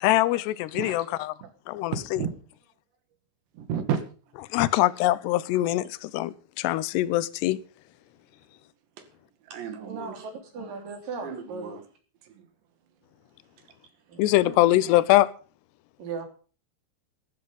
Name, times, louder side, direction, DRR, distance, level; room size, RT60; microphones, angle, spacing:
voice 1, 0.0-1.0 1.7-1.9 4.5-7.6 14.2-15.3, left 16 dB, 80° left, 2.7 m, -23 dB
voice 2, 0.7-1.5 1.9-2.3 3.5-4.3 4.7-4.8 9.0-9.1 9.4-10.3 11.2-11.8 12.2-12.5 13.6-13.8, right 8 dB, 75° right, 4.2 m, -34 dB
voice 3, 9.8-11.7 14.1-14.7 16.0-16.3, right 4 dB, 50° right, 4.7 m, -38 dB
13.5 x 13.0 x 5.4 m
omnidirectional pair, 5.2 m